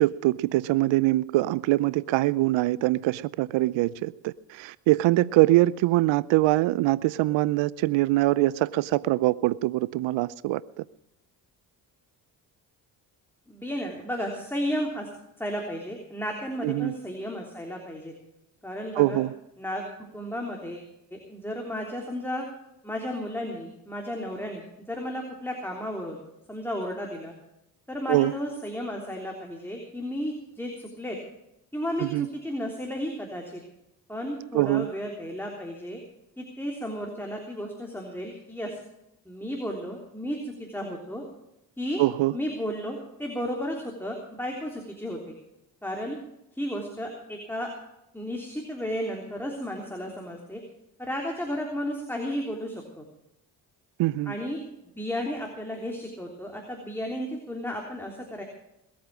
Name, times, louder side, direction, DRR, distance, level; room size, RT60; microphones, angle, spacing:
voice 1, 0.0-10.8 16.6-16.9 18.9-19.3 28.1-28.3 32.0-32.3 34.5-34.9 42.0-42.3 54.0-54.3, right 17 dB, 65° right, 19 dB, 0.6 m, -23 dB
voice 2, 13.5-15.1 15.4-18.1 18.6-19.2 19.6-19.8 20.1-22.5 22.8-26.2 26.5-27.3 27.9-31.2 31.7-33.6 34.1-36.0 36.4-38.8 39.2-41.2 41.8-42.0 42.3-45.3 45.8-46.2 46.5-47.7 48.1-50.6 51.0-53.1 54.2-54.6 54.9-58.4, equal, 5° left, 0 dB, 3.3 m, -33 dB
20.5 x 8.8 x 6.2 m, 0.82 s
hypercardioid pair, 55°, 48 cm